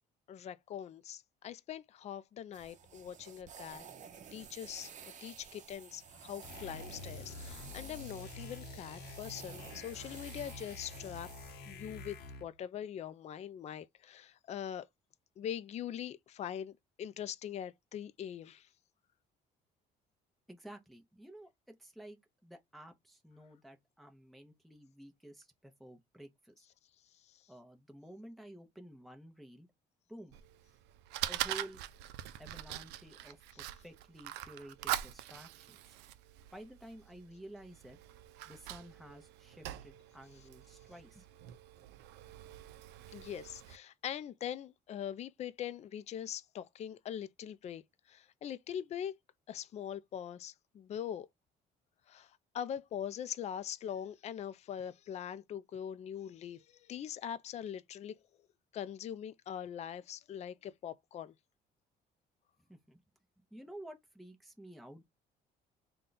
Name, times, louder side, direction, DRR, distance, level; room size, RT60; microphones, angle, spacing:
voice 1, 0.3-3.8 4.3-4.9 5.2-11.3 11.7-14.9 15.4-16.7 17.0-18.7 43.1-47.8 48.1-49.2 49.5-51.3 52.1-58.2 58.7-61.3, left 9 dB, 40° left, 0.4 m, -42 dB
sound 1, 2.5-11.5, right 7 dB, 45° right, 0.7 m, -52 dB
sound 2, 6.4-12.6, left 3 dB, 75° left, 0.7 m, -48 dB
voice 2, 20.5-21.5 21.8-26.7 27.5-29.7 30.1-30.4 31.3-31.8 32.4-35.8 36.5-38.0 38.5-41.3 62.7-63.0 63.5-65.0, right 1 dB, ahead, 0.7 m, -52 dB
Fire, 30.3-43.8, right 13 dB, 85° right, 0.4 m, -43 dB
3.7 x 2.3 x 3.9 m
cardioid pair, 110°, 17 cm